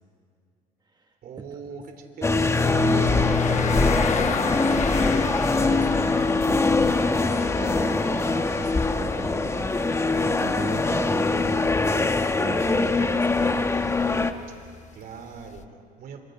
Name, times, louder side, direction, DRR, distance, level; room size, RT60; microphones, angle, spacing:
voice 1, 1.2-2.6 14.6-16.2, right 6 dB, 60° right, 6 dB, 3.4 m, -41 dB
sound 1, 2.2-14.3, left 3 dB, 15° left, 1.2 m, -23 dB
sound 2, 2.6-15.6, left 8 dB, 45° left, 1.0 m, -36 dB
voice 2, 2.8-13.7, right 4 dB, 25° right, 4 dB, 1.4 m, -36 dB
29.5 x 26.5 x 5.2 m, 2.2 s
cardioid pair, 110°, 17 cm